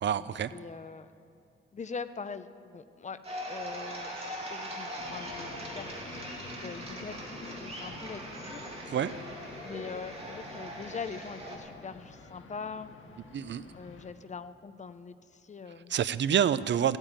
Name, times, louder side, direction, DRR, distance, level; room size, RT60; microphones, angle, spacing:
voice 1, 0.0-0.5 8.9-9.1 13.3-13.6 15.9-17.0, right 9 dB, 60° right, 16 dB, 0.4 m, -27 dB
voice 2, 0.5-1.1 1.7-3.2 3.5-8.7 9.6-12.9 13.7-15.9, left 5 dB, 35° left, 12 dB, 0.5 m, -42 dB
sound 1, 3.2-11.6, right 1 dB, 30° right, 2.4 m, -41 dB
sound 2, 5.0-14.1, left 3 dB, 80° left, 1.5 m, -48 dB
15.5 x 8.9 x 8.9 m, 2.5 s
wide cardioid pair, 150°, 21 cm